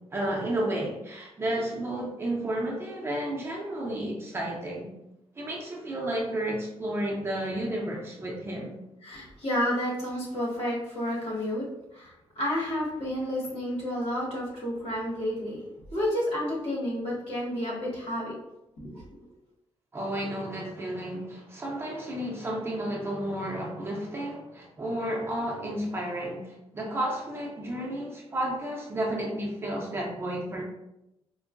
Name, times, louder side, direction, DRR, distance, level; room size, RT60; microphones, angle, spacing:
voice 1, 0.0-4.9 5.4-8.8 19.9-30.6, right 1 dB, 20° right, -2 dB, 0.5 m, -32 dB
voice 2, 9.0-11.7 11.9-15.6 15.9-18.3 18.8-19.0, equal, 70° left, -5 dB, 1.4 m, -30 dB
4.4 x 2.0 x 2.4 m, 0.88 s
wide cardioid pair, 180°, 11 cm